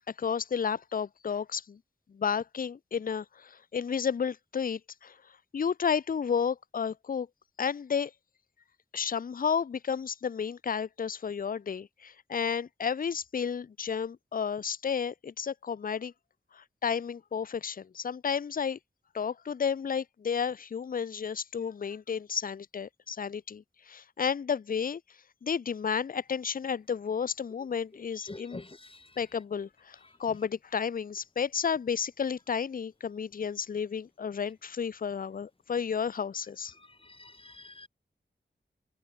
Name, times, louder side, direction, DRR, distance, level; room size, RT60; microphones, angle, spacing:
voice 1, 0.0-1.8 2.1-5.2 5.5-7.3 7.6-8.1 8.9-16.1 16.5-18.8 19.1-25.0 25.4-28.6 29.2-36.7, left 6 dB, 45° left, 0.5 m, -32 dB
voice 2, 28.3-28.8 37.2-37.9, left 2 dB, 25° left, 1.5 m, -44 dB
wide cardioid pair, 85°, 20 cm